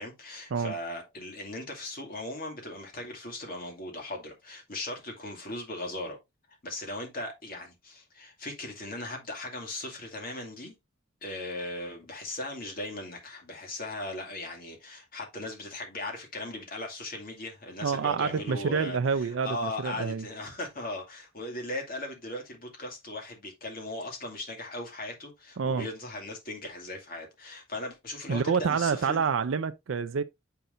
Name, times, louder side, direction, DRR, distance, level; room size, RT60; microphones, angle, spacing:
voice 1, 0.0-6.2 6.6-10.8 11.2-29.3, left 1 dB, 45° left, 2.3 m, -38 dB
voice 2, 17.8-20.2 25.6-25.9 28.3-30.2, right 6 dB, 70° right, 0.4 m, -28 dB
7.9 x 5.8 x 2.5 m
head